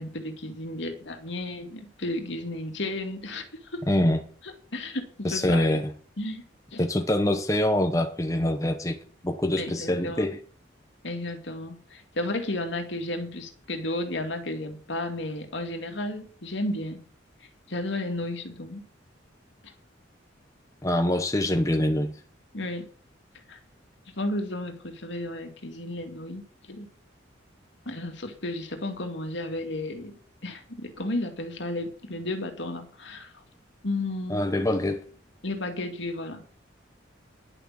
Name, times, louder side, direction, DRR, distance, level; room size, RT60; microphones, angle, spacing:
voice 1, 0.0-3.5 3.7-3.8 4.4-5.8 6.2-6.4 6.7-6.9 9.6-10.3 11.0-17.0 17.7-18.8 19.6-19.7 22.5-22.9 23.5-23.6 24.2-26.9 27.9-30.1 30.4-33.3 33.8-34.4 35.4-36.4, left 1 dB, 65° left, 5 dB, 2.3 m, -33 dB
voice 2, 3.9-4.2 5.2-5.9 6.8-9.0 9.2-10.4 20.8-22.1 34.3-35.0, left 1 dB, 15° left, 5 dB, 0.9 m, -24 dB
11.0 x 6.7 x 7.6 m, 0.42 s
head